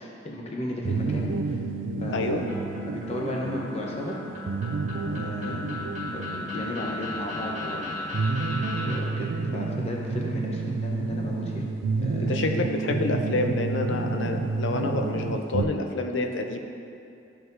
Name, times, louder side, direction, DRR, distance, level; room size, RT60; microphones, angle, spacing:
voice 1, 0.0-1.6 2.0-2.5 2.9-4.2 5.0-5.7 6.1-8.5 8.9-11.6 12.0-12.5, left 1 dB, 35° left, -2 dB, 0.7 m, -34 dB
sound 1, 0.8-15.6, right 3 dB, 80° right, 0.4 m, -30 dB
voice 2, 2.1-2.4 5.4-5.6 12.2-16.6, left 2 dB, 75° left, 4 dB, 0.6 m, -28 dB
sound 2, 2.5-9.0, left 2 dB, 40° right, 1.4 m, -36 dB
12.5 x 4.7 x 2.6 m, 2.6 s
head